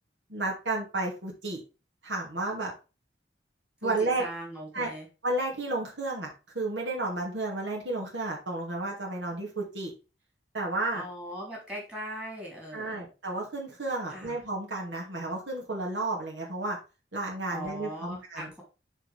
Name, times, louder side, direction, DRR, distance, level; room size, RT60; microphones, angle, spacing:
voice 1, 0.3-1.6 2.0-2.7 3.8-4.2 4.7-4.9 5.2-9.9 10.5-11.0 12.7-16.8 17.1-18.5, right 2 dB, 90° right, -2 dB, 2.4 m, -32 dB
voice 2, 3.8-5.1 10.9-13.1 14.1-14.4 17.5-18.5, equal, 5° right, -3 dB, 3.6 m, -39 dB
8.8 x 4.5 x 3.5 m, 0.30 s
head